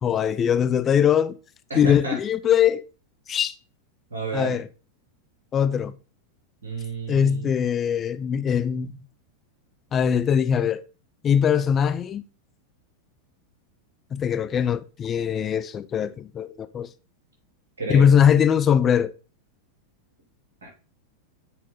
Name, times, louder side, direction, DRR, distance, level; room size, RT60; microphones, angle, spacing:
voice 1, 0.0-1.3 1.7-2.8 3.3-3.6 4.3-4.6 5.5-5.9 7.1-9.0 9.9-10.8 11.2-12.2 14.1-16.9 17.9-19.1, left 8 dB, 25° left, 0.4 m, -21 dB
voice 2, 1.7-2.2 4.1-4.6 6.6-7.5 17.8-18.2 20.6-20.7, right 3 dB, 70° right, 2.8 m, -31 dB
7.4 x 4.1 x 3.7 m
figure-of-eight pair, 90°, 0 cm